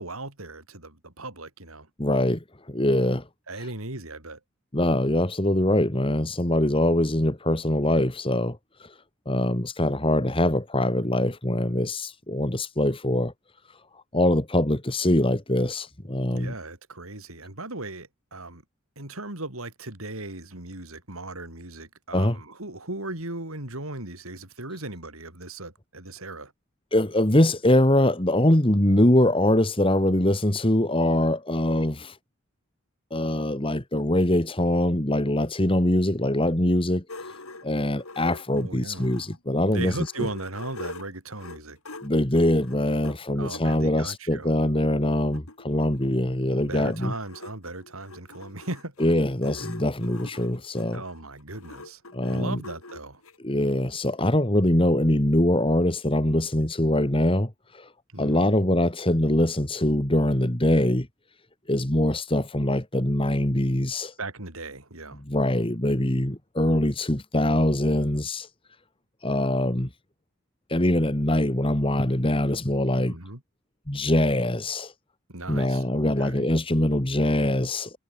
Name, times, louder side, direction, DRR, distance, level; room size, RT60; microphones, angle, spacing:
voice 1, 0.0-1.9 3.5-4.4 16.3-18.6 19.0-26.5 38.5-39.1 39.7-41.8 43.3-44.5 46.6-48.9 50.9-52.0 52.3-53.2 58.1-58.5 64.2-65.2 73.1-73.4 75.3-76.5, right 2 dB, 80° right, 6.1 m, -37 dB
voice 2, 2.0-3.3 4.7-9.0 9.3-13.3 13.9-16.5 22.1-22.4 26.9-32.2 33.1-37.0 37.6-40.0 42.0-47.1 49.0-51.0 52.1-52.6 53.4-57.9 58.2-61.1 61.7-64.1 65.3-68.5 69.2-69.9 70.7-73.2 73.9-74.9 75.5-78.0, left 1 dB, 25° left, 2.1 m, -23 dB
sound 1, 37.1-39.4 39.8-43.6 44.4-44.5 44.8-44.9 45.1-53.4, left 2 dB, 85° left, 5.4 m, -43 dB
head